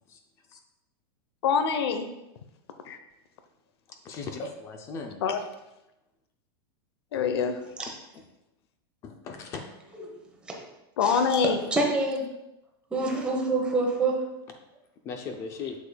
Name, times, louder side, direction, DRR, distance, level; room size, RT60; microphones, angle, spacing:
voice 1, 1.4-2.1 2.9-3.0 5.2-5.4 7.1-7.6 11.0-11.6, left 6 dB, 75° left, 8 dB, 0.8 m, -25 dB
voice 2, 3.9-5.2 7.1-7.2 7.8-8.3 9.0-9.6 11.6-11.9 14.5-14.6 15.1-15.8, left 4 dB, 20° left, 5 dB, 0.5 m, -38 dB
voice 3, 11.0-12.2 12.9-14.1, right 3 dB, 10° right, -1 dB, 1.0 m, -27 dB
8.1 x 6.7 x 2.2 m, 0.92 s
supercardioid pair, 170°, 13 cm